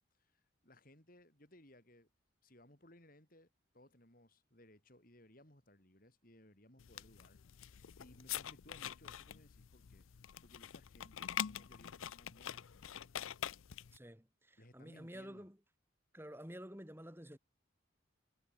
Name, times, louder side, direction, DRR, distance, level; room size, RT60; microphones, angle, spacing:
voice 1, 0.1-2.1 2.4-10.1 10.4-13.2 14.6-15.5, left 1 dB, 45° left, 5.5 m, -63 dB
sound 1, 6.8-14.0, left 10 dB, 85° left, 0.5 m, -45 dB
voice 2, 13.9-15.6 16.1-17.4, equal, 10° right, 3.2 m, -50 dB
head